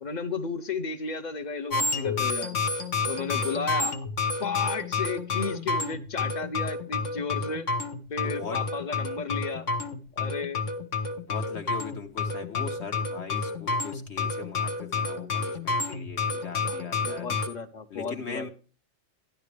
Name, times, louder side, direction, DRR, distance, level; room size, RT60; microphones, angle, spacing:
voice 1, 0.0-2.6 3.1-4.1 4.4-7.7 8.1-9.7 10.2-10.6 16.6-16.8 17.1-18.5, left 5 dB, 40° left, 12 dB, 0.8 m, -33 dB
sound 1, 1.7-17.5, left 4 dB, 80° left, 1.6 m, -30 dB
voice 2, 8.2-8.6 11.2-17.3 17.9-18.5, left 5 dB, 65° left, 4 dB, 1.3 m, -40 dB
12.5 x 11.0 x 3.3 m, 0.36 s
omnidirectional pair, 1.3 m